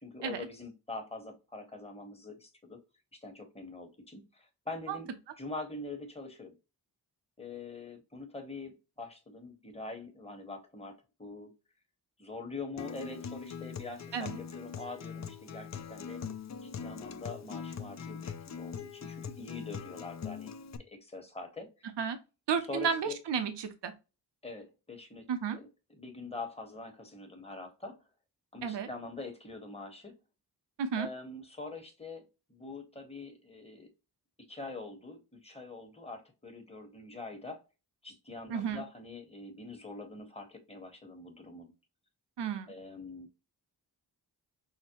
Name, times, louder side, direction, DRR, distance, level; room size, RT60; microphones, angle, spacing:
voice 1, 0.0-2.8 3.1-5.1 5.4-6.5 7.4-11.5 12.2-16.2 16.6-20.5 20.8-21.9 22.7-23.2 24.4-25.3 25.5-28.0 28.5-30.1 30.9-33.9 34.5-37.6 38.0-41.7 42.7-43.4, left 3 dB, 15° left, 1.2 m, -44 dB
Acoustic guitar, 12.8-20.8, left 7 dB, 45° left, 0.4 m, -42 dB
voice 2, 22.5-23.9 25.3-25.6 28.6-28.9 30.8-31.1 38.5-38.8 42.4-42.7, right 6 dB, 85° right, 0.7 m, -32 dB
5.7 x 2.1 x 2.9 m
wide cardioid pair, 75°, 41 cm